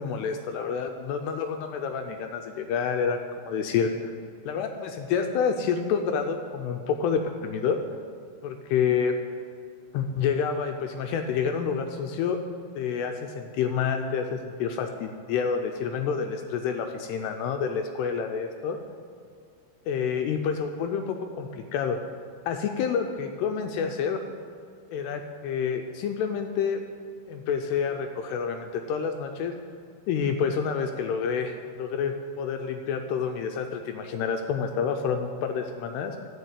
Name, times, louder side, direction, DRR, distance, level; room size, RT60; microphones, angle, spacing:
voice 1, 0.0-3.2 3.5-4.1 4.5-7.8 8.4-9.2 9.9-12.4 12.8-18.8 19.9-22.0 22.5-24.2 24.9-26.8 27.3-29.5 30.1-36.2, left 6 dB, 80° left, 5 dB, 2.5 m, -28 dB
12.0 x 5.6 x 8.2 m, 2.3 s
omnidirectional pair, 5.2 m